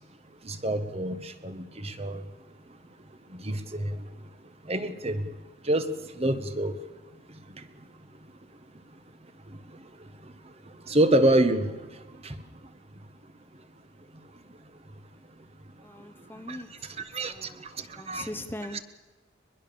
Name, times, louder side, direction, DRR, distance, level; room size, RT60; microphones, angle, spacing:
voice 1, 0.4-2.2 3.4-3.9 4.7-5.2 5.7-5.8 6.2-6.7 10.9-11.7 12.2-12.3 16.5-16.6 17.1-17.5 18.1-18.3, right 1 dB, 30° right, 9 dB, 1.5 m, -26 dB
voice 2, 15.8-17.7 17.9-18.8, left 1 dB, 10° left, 8 dB, 1.0 m, -41 dB
22.5 x 21.5 x 7.1 m, 1.2 s
head